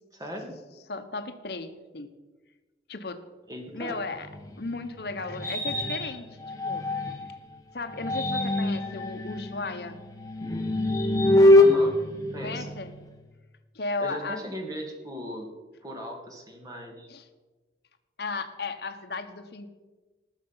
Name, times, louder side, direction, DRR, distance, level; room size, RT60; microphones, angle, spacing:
voice 1, 0.1-0.6 3.5-4.0 11.6-11.9 12.3-12.7 14.0-15.5 15.8-17.1, equal, 20° right, 2 dB, 1.9 m, -38 dB
voice 2, 0.9-2.1 2.9-3.2 3.7-4.3 4.6-6.3 6.6-6.8 7.7-10.0 12.4-12.9 13.7-14.4 17.1-17.2 18.2-19.7, left 3 dB, 70° left, 9 dB, 1.0 m, -35 dB
sound 1, 4.2-7.4 7.9-13.1, left 1 dB, 20° left, 1.1 m, -24 dB
19.5 x 6.9 x 5.6 m, 1.3 s
head